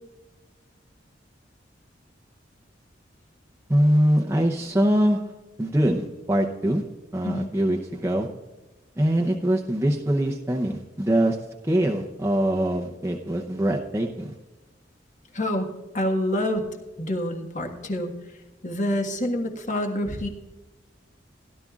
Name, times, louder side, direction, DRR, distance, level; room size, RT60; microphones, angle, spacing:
voice 1, 3.7-5.2 5.6-6.8 7.1-8.3 9.0-11.4 11.6-14.4, right 1 dB, 15° right, 0 dB, 0.7 m, -23 dB
voice 2, 15.3-15.7 15.9-16.6 17.0-18.1 18.6-20.3, left 1 dB, 45° left, 3 dB, 1.5 m, -27 dB
17.0 x 11.5 x 2.4 m, 1.1 s
head